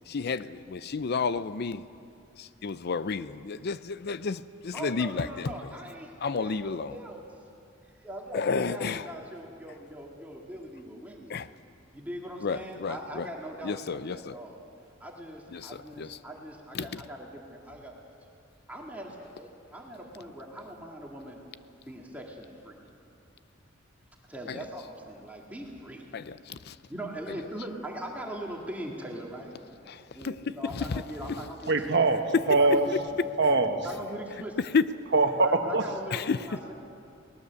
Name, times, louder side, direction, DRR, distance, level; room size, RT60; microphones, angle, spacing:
voice 1, 0.1-1.8 2.4-5.5 6.2-6.9 8.3-9.1 11.3-11.5 12.4-13.3 13.6-14.3 15.5-16.2 16.7-17.0 24.5-24.6 26.1-26.8 27.3-27.4 29.9-31.0 32.3-32.4 34.6-34.9 36.1-36.4, left 5 dB, 55° left, 15 dB, 0.5 m, -31 dB
voice 2, 4.7-7.3 7.8-11.4 11.9-14.6 15.0-17.9 18.7-21.4 21.8-22.8 24.3-26.1 26.9-29.5 30.2-32.0 32.5-33.2 33.8-34.6 35.4-36.7, right 1 dB, 10° right, -1 dB, 2.0 m, -41 dB
voice 3, 31.7-32.8 33.4-33.9 35.1-35.8, right 3 dB, 60° right, 5 dB, 1.5 m, -23 dB
22.5 x 19.0 x 7.0 m, 2.5 s
head